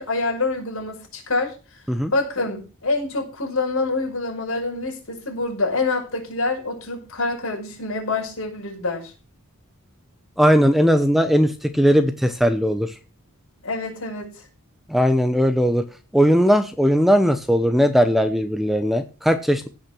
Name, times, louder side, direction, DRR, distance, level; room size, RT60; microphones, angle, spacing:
voice 1, 0.0-1.5 2.1-9.1 13.6-14.3, left 3 dB, 65° left, 0 dB, 5.7 m, -26 dB
voice 2, 10.4-12.9 14.9-15.8 16.1-19.7, equal, ahead, 10 dB, 0.7 m, -18 dB
16.0 x 6.1 x 6.1 m, 0.34 s
head